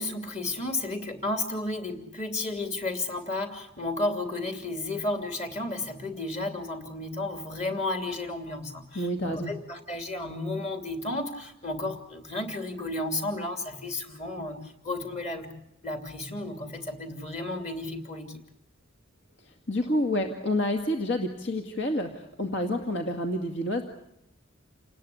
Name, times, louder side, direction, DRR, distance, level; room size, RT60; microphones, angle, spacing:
voice 1, 0.0-15.5 15.8-18.4, left 2 dB, 35° left, 6 dB, 2.9 m, -33 dB
voice 2, 8.9-9.5 19.4-23.8, left 1 dB, 60° left, 4 dB, 2.2 m, -29 dB
29.0 x 19.5 x 8.5 m, 0.78 s
head